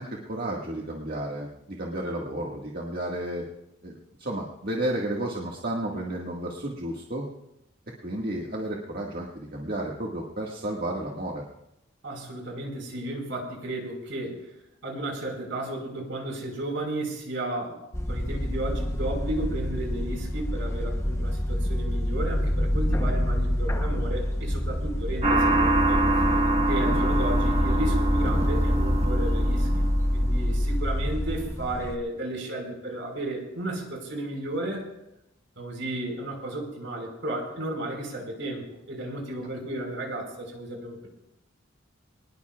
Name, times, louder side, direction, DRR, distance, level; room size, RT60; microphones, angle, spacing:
voice 1, 0.0-3.5 3.8-7.3 8.0-11.5, right 1 dB, 45° right, -2 dB, 1.8 m, -32 dB
voice 2, 12.0-14.5 14.8-17.8 18.1-26.0 26.7-29.7 30.1-34.9 35.6-41.1, right 1 dB, 65° right, 1 dB, 5.2 m, -33 dB
sound 1, 17.9-32.0, equal, 15° left, 0.9 m, -26 dB
sound 2, 25.2-30.5, right 2 dB, 30° right, 1.5 m, -26 dB
23.5 x 20.5 x 2.4 m, 0.87 s
head